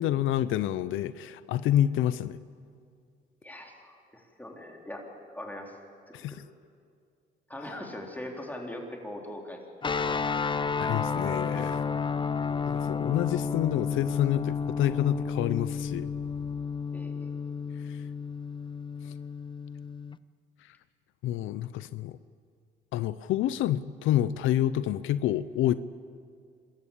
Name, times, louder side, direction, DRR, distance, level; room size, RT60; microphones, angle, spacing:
voice 1, 0.0-2.4 6.1-6.4 10.8-11.8 12.7-16.1 17.8-18.0 19.0-19.1 21.2-22.2 22.9-25.8, left 12 dB, 85° left, 15 dB, 0.6 m, -28 dB
voice 2, 3.4-5.8 6.1-6.4 7.5-9.6 16.9-17.3, left 1 dB, 10° left, 0 dB, 3.8 m, -41 dB
sound 1, 9.8-16.6, left 8 dB, 65° left, 1.3 m, -50 dB
sound 2, 9.8-20.2, left 5 dB, 25° left, 0.5 m, -31 dB
25.5 x 14.0 x 8.5 m, 2.3 s
cardioid pair, 90°, 20 cm